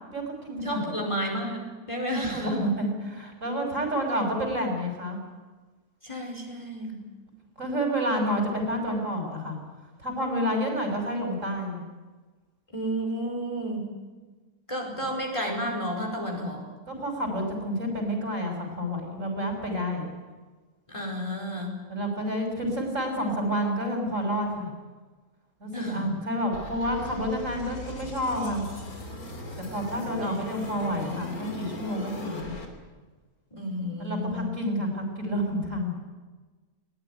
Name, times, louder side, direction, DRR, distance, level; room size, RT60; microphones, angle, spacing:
voice 1, 0.1-0.8 2.2-5.2 7.6-9.6 10.0-11.8 15.0-15.1 16.9-20.1 21.9-24.7 25.6-28.6 29.7-32.5 34.0-35.9, equal, 60° right, 2 dB, 6.5 m, -29 dB
voice 2, 0.6-2.9 6.0-7.0 12.7-13.9 14.7-16.6 20.9-21.7 25.7-26.1 30.2-30.4 33.5-34.5, equal, 20° left, 1 dB, 4.9 m, -32 dB
sound 1, 26.5-32.7, left 2 dB, 75° left, 3.8 m, -39 dB
21.0 x 20.0 x 9.9 m, 1.3 s
omnidirectional pair, 1.6 m